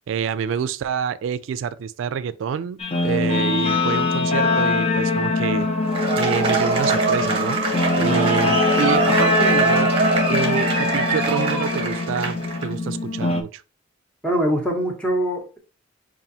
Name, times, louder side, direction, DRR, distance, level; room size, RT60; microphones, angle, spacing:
voice 1, 0.1-5.7 6.2-7.6 8.0-9.9 10.3-13.6, right 7 dB, 85° right, 0.3 m, -27 dB
Guitar, 2.8-13.4, left 2 dB, 30° left, 0.5 m, -22 dB
Cheering / Applause / Crowd, 5.8-12.7, right 3 dB, 30° right, 1.0 m, -23 dB
voice 2, 14.2-15.6, right 1 dB, 5° left, 0.9 m, -24 dB
5.4 x 2.5 x 2.7 m
head